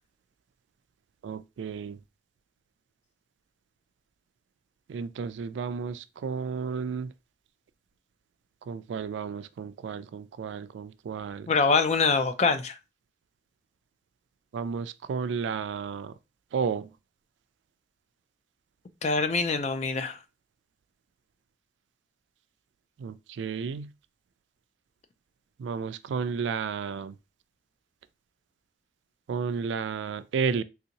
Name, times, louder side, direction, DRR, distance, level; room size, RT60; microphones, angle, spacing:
voice 1, 1.2-2.0 4.9-7.1 8.7-11.5 14.5-16.1 16.5-16.9 23.0-23.9 25.6-27.1 29.3-30.6, right 6 dB, 75° right, 0.3 m, -32 dB
voice 2, 11.5-12.8 19.0-20.2, left 4 dB, 40° left, 0.4 m, -24 dB
3.4 x 2.6 x 2.9 m
head